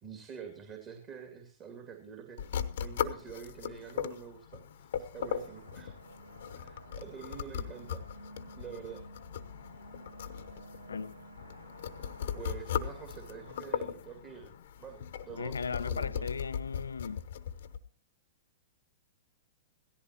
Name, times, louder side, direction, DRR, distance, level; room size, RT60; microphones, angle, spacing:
voice 1, 0.0-5.9 6.5-8.0 8.6-9.0 12.4-14.5 14.8-16.2, right 7 dB, 30° right, 2.4 m, -47 dB
sound 1, 2.4-17.8, left 8 dB, 65° left, 0.9 m, -38 dB
sound 2, 5.1-13.8, right 2 dB, 90° right, 1.0 m, -53 dB
voice 2, 15.3-17.2, left 5 dB, 85° left, 0.5 m, -37 dB
17.0 x 14.5 x 2.9 m
hypercardioid pair, 110°, 0 cm